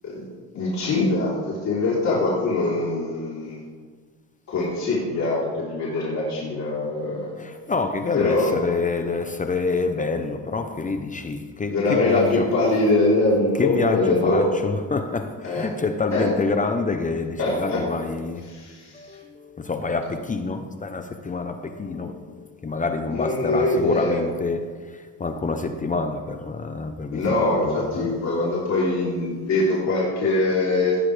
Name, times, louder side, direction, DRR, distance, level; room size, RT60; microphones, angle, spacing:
voice 1, 0.5-3.6 4.5-7.3 8.1-8.6 11.7-14.5 15.4-15.7 16.1-16.3 17.4-17.8 18.5-19.2 23.1-24.2 27.1-31.0, left 2 dB, 50° left, 3.9 m, -23 dB
voice 2, 7.4-12.5 13.6-18.5 18.9-28.1, left 4 dB, 20° left, 0.8 m, -27 dB
17.0 x 10.0 x 3.4 m
cardioid pair, 110°, 36 cm